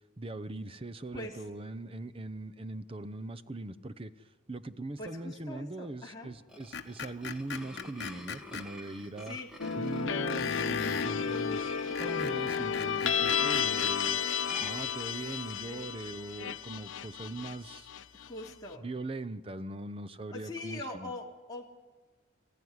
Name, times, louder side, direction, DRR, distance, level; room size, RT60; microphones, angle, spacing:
voice 1, 0.2-9.4 9.7-11.7 12.0-14.2 14.6-17.9 18.5-21.1, right 2 dB, 30° right, 12 dB, 0.8 m, -41 dB
voice 2, 5.0-6.3 9.2-9.5 15.7-15.8 18.1-18.9 20.3-21.7, left 2 dB, 20° left, -4 dB, 2.9 m, -42 dB
sound 1, 6.3-15.6, left 1 dB, 5° right, 1.9 m, -49 dB
Screech, 6.7-8.7 10.3-11.1 11.8-14.0, left 6 dB, 60° left, 1.2 m, -39 dB
sound 2, 9.6-18.5, left 7 dB, 80° left, 0.6 m, -32 dB
25.5 x 15.0 x 9.7 m, 1.3 s
head